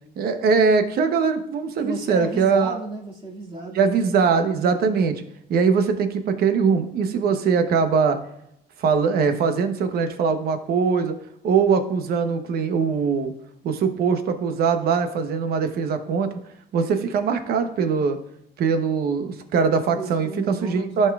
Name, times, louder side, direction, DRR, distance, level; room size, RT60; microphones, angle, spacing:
voice 1, 0.2-2.8 3.7-5.1 5.5-8.2 8.8-11.1 11.4-13.3 13.6-16.4 16.7-18.2 18.6-21.1, right 5 dB, 65° right, 8 dB, 1.0 m, -21 dB
voice 2, 1.8-3.8 20.0-21.1, right 1 dB, 30° right, -2 dB, 2.3 m, -33 dB
13.5 x 5.5 x 2.4 m, 0.77 s
cardioid pair, 110°, 17 cm